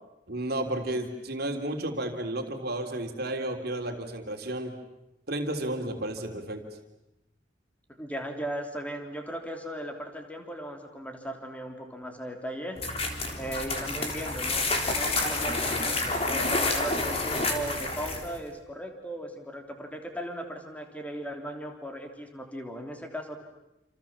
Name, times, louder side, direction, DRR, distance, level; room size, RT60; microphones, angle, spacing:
voice 1, 0.3-4.7 5.3-6.6, right 1 dB, 55° right, 4 dB, 3.4 m, -32 dB
voice 2, 5.7-6.1 8.0-23.4, right 1 dB, 10° left, 4 dB, 3.2 m, -38 dB
sound 1, 12.8-18.4, left 2 dB, 35° left, 3.7 m, -29 dB
28.5 x 28.0 x 7.4 m, 0.91 s
head